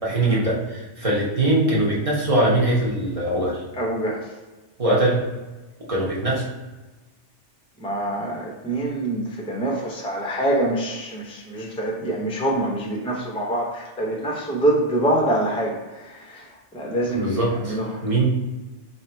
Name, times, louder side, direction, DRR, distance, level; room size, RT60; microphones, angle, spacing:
voice 1, 0.0-3.6 4.8-5.2 5.9-6.5 17.1-18.2, right 1 dB, 30° right, -6 dB, 1.0 m, -22 dB
voice 2, 3.7-4.4 4.9-5.0 7.8-18.0, right 1 dB, 5° left, -1 dB, 0.5 m, -25 dB
3.2 x 2.7 x 4.3 m, 1.2 s
omnidirectional pair, 1.2 m